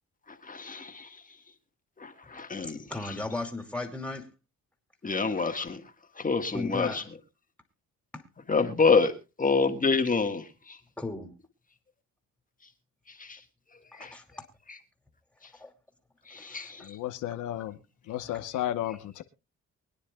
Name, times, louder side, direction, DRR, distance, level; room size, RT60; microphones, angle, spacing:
voice 1, 0.5-1.1 2.0-2.8 5.0-5.8 6.2-7.0 8.5-9.1 9.4-10.4 14.0-14.1 16.3-16.8, left 4 dB, 25° left, 1.5 m, -26 dB
voice 2, 2.6-4.3 6.5-7.1 8.1-8.2 11.0-11.3 13.9-14.2 15.6-15.7 16.4-16.9 18.2-18.3, left 2 dB, 5° left, 2.6 m, -36 dB
voice 3, 16.8-19.2, left 12 dB, 85° left, 1.0 m, -33 dB
24.0 x 9.8 x 2.3 m
cardioid pair, 90°, 30 cm